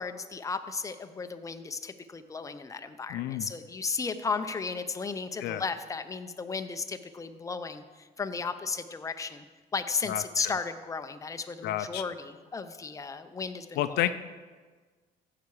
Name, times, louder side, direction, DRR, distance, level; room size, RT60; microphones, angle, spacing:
voice 1, 0.0-9.4 9.7-14.1, left 4 dB, 20° left, 9 dB, 0.6 m, -35 dB
voice 2, 3.1-3.5 5.4-5.6 10.1-10.2 11.6-12.0 13.8-14.1, left 13 dB, 75° left, 12 dB, 0.5 m, -30 dB
15.5 x 5.8 x 4.8 m, 1.4 s
cardioid pair, 110°, 17 cm